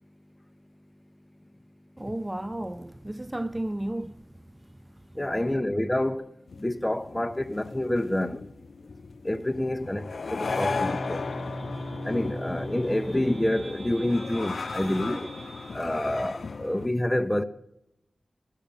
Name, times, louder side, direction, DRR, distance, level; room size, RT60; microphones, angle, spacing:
voice 1, 2.0-4.8 5.5-5.6 14.8-15.3 16.1-16.2, right 1 dB, 20° right, 0.4 m, -34 dB
voice 2, 5.2-6.2 6.6-8.4 9.2-11.2 12.0-15.2 15.7-17.4, left 1 dB, 15° left, 0.7 m, -27 dB
sound 1, 6.5-16.9, left 4 dB, 80° left, 0.4 m, -36 dB
sound 2, 10.4-15.8, right 1 dB, 80° right, 1.1 m, -40 dB
13.5 x 6.6 x 8.6 m
cardioid pair, 50°, 0 cm